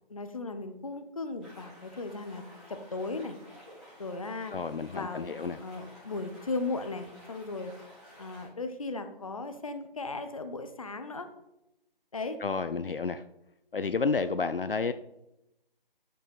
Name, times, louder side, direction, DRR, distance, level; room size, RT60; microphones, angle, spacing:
voice 1, 0.1-2.4 2.7-3.4 4.0-4.5 4.9-5.3 5.6-7.7 8.2-11.3 12.1-12.4, left 3 dB, 35° left, 9 dB, 0.8 m, -36 dB
sound 1, 1.4-8.5, equal, ahead, 1.6 m, -53 dB
voice 2, 4.5-5.6 12.4-13.2 13.7-14.9, left 4 dB, 65° left, 12 dB, 0.5 m, -30 dB
13.0 x 5.3 x 4.3 m, 0.88 s
figure-of-eight pair, 155°, 29 cm